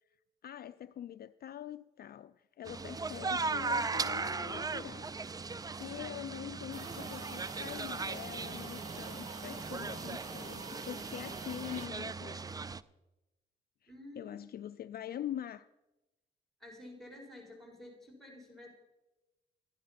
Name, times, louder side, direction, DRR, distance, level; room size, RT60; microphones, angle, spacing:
voice 1, 0.4-5.1 5.8-12.5 13.8-15.7, left 11 dB, 50° left, 13 dB, 0.4 m, -44 dB
sound 1, 2.7-12.8, right 4 dB, 20° right, 0.4 m, -38 dB
sound 2, 6.7-11.9, right 3 dB, 35° right, 1.4 m, -47 dB
voice 2, 13.9-14.3 16.6-18.7, left 1 dB, ahead, 1 dB, 4.4 m, -50 dB
13.0 x 10.5 x 5.8 m, 1.0 s
cardioid pair, 90°, 20 cm